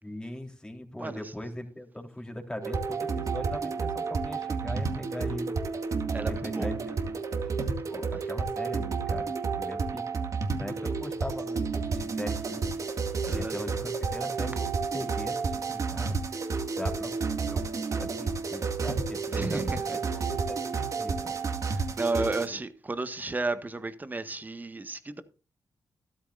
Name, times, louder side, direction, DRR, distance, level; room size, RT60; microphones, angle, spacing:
voice 1, 0.0-5.5 6.2-10.0 10.6-12.7 13.3-16.2 16.8-17.1 17.5-19.6 20.1-21.3 22.2-22.6, left 1 dB, 10° left, 3.8 m, -40 dB
sound 1, 2.6-22.5, right 4 dB, 55° right, 2.1 m, -31 dB
voice 2, 6.1-6.7 13.3-13.6 19.3-20.0 21.7-25.2, right 3 dB, 25° right, 1.6 m, -33 dB
13.5 x 13.0 x 2.6 m
cardioid pair, 75°, 7 cm